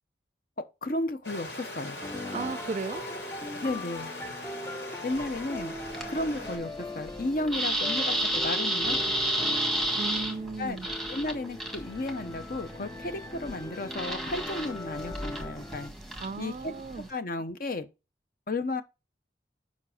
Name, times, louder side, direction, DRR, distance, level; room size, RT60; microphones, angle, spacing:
voice 1, 0.8-2.0 3.6-4.1 5.0-5.7 6.1-9.0 10.6-10.8 11.1-15.9 16.4-16.7 17.1-17.9 18.5-18.8, left 2 dB, 50° left, 0.9 m, -33 dB
Stream, 1.2-6.6, left 1 dB, 80° left, 4.0 m, -40 dB
sound 1, 2.0-15.9, left 1 dB, 15° left, 0.5 m, -40 dB
voice 2, 2.3-3.0 9.9-10.9 16.2-17.1, right 4 dB, 40° right, 0.4 m, -35 dB
sound 2, 5.1-17.1, right 1 dB, ahead, 1.5 m, -33 dB
7.4 x 5.4 x 5.0 m
head